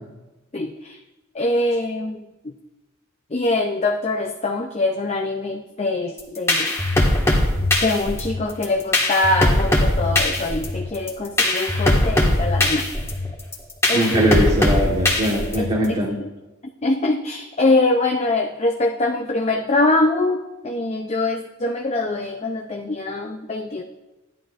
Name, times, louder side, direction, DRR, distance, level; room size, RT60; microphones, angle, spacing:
voice 1, 0.5-1.0 1.3-2.5 3.3-6.7 7.8-12.9 13.9-14.3 15.6-16.3 16.8-23.8, left 2 dB, 30° left, 2 dB, 0.5 m, -23 dB
sound 1, 6.2-15.8, left 1 dB, 15° left, 1.6 m, -20 dB
voice 2, 13.9-16.2, equal, 30° right, -3 dB, 1.4 m, -21 dB
16.0 x 11.0 x 2.5 m, 1.1 s
head